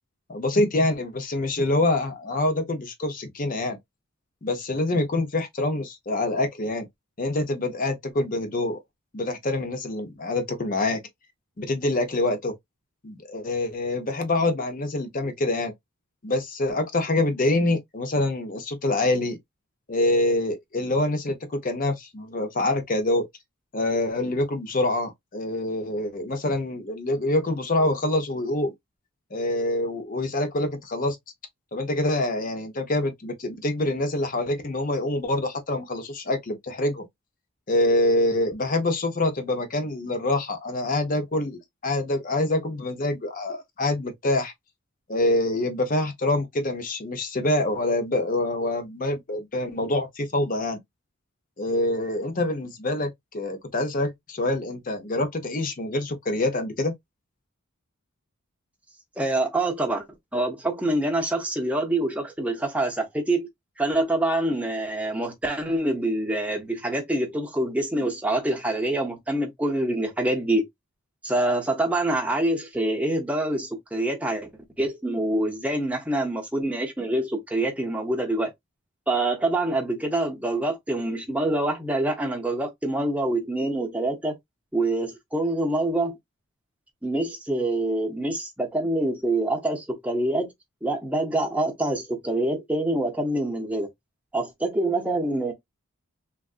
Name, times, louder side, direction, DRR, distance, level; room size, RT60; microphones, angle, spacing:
voice 1, 0.3-3.8 4.4-6.9 7.2-8.8 9.1-11.0 11.6-12.5 13.0-15.7 16.2-19.4 19.9-23.3 23.7-28.7 29.3-31.2 31.7-37.0 37.7-44.5 45.1-50.8 51.6-56.9, left 2 dB, 40° left, 0.7 m, -25 dB
voice 2, 59.2-60.0 60.3-63.5 63.8-70.7 71.2-74.5 74.8-78.5 79.1-84.4 84.7-86.2 87.0-90.5 90.8-93.9 94.3-95.5, right 1 dB, 5° right, 0.6 m, -26 dB
3.4 x 2.5 x 2.3 m
head